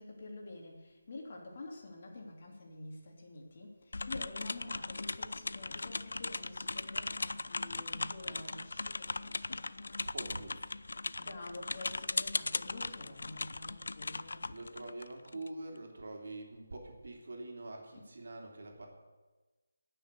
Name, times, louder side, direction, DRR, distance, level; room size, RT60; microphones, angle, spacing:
voice 1, 0.0-10.2 11.2-14.6 17.9-18.0, left 2 dB, 45° left, 1 dB, 2.9 m, -48 dB
sound 1, 3.9-15.5, left 3 dB, 75° left, 0.5 m, -38 dB
voice 2, 10.0-10.8 14.4-18.9, right 2 dB, 65° right, 1 dB, 3.1 m, -45 dB
18.5 x 6.6 x 6.8 m, 1.2 s
figure-of-eight pair, 170°, 0 cm